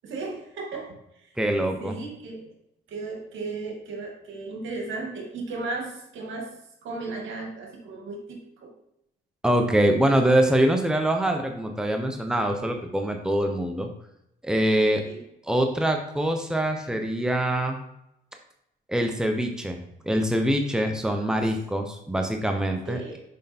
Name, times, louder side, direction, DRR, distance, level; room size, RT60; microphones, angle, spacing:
voice 1, 0.0-1.3 1.8-2.5 2.9-6.6 6.8-8.7 14.8-15.2 22.9-23.2, right 3 dB, 75° right, 1 dB, 2.0 m, -35 dB
voice 2, 1.4-2.0 9.4-13.9 14.4-15.0 15.4-17.8 18.9-19.8 20.0-23.0, right 1 dB, 5° right, 4 dB, 1.0 m, -24 dB
6.6 x 5.0 x 4.3 m, 0.81 s
cardioid pair, 90°, 20 cm